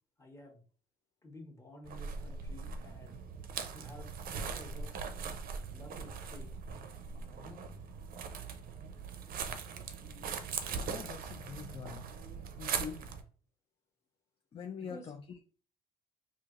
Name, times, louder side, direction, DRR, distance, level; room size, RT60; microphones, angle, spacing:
voice 1, 0.2-0.6 1.2-3.2 3.7-5.0 5.7-6.5 7.4-7.7 13.0-13.2 14.8-15.1, left 1 dB, 15° left, 2 dB, 1.1 m, -52 dB
sound 1, 1.9-13.2, right 6 dB, 60° right, 0.6 m, -41 dB
voice 2, 10.8-12.0 12.6-13.0 14.5-15.4, left 6 dB, 35° left, 4 dB, 0.5 m, -44 dB
4.9 x 2.8 x 2.5 m, 0.40 s
cardioid pair, 110°, 17 cm